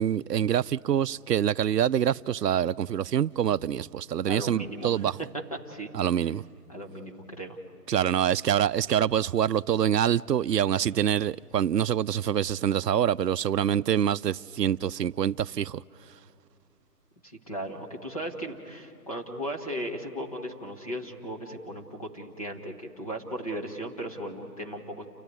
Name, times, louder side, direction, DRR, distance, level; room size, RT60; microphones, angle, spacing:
voice 1, 0.0-5.2 5.9-6.4 7.9-15.8, right 10 dB, 85° right, 0.6 m, -25 dB
voice 2, 4.3-5.0 5.7-5.9 6.7-7.6 17.2-25.0, right 1 dB, 25° left, 1.4 m, -36 dB
29.0 x 11.0 x 9.4 m
figure-of-eight pair, 175°, 47 cm